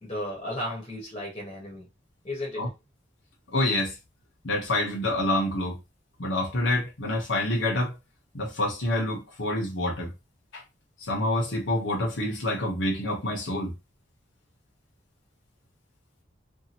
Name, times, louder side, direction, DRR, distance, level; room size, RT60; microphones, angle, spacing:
voice 1, 0.0-1.9 2.2-2.7, left 1 dB, 30° left, 1.0 m, -34 dB
voice 2, 3.5-3.9 4.4-5.8 6.2-7.9 8.3-10.1 10.5-10.6 11.0-13.7, left 1 dB, 80° left, 1.0 m, -27 dB
2.7 x 2.5 x 2.8 m
head